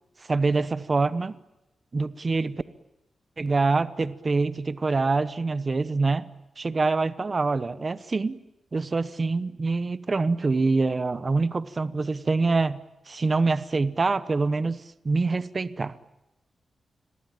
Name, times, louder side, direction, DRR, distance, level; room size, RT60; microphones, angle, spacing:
voice 1, 0.2-1.3 1.9-2.6 3.4-6.3 6.6-8.4 8.7-12.8 13.1-15.9, right 3 dB, 30° right, 16 dB, 0.9 m, -25 dB
29.5 x 22.5 x 8.9 m, 0.93 s
wide cardioid pair, 170°, 0 cm